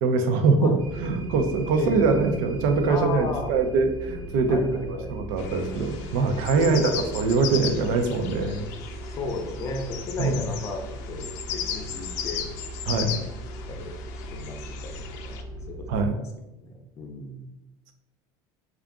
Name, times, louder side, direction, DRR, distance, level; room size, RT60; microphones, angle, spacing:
voice 1, 0.0-8.7 10.2-10.4 12.9-13.1 15.9-16.1, right 4 dB, 75° right, 6 dB, 0.6 m, -23 dB
sound 1, 0.8-16.1, right 1 dB, 25° right, 0.6 m, -38 dB
voice 2, 1.7-2.2 2.9-3.5 4.5-5.2 6.5-7.2 9.0-12.4 13.0-13.2 13.7-14.9 15.2-15.4 15.7-16.3 16.6-17.5, left 3 dB, 30° left, 3 dB, 0.5 m, -34 dB
sound 2, 5.4-15.4, left 8 dB, 75° left, 0.5 m, -37 dB
3.7 x 2.4 x 3.5 m, 0.92 s
cardioid pair, 155°, 10 cm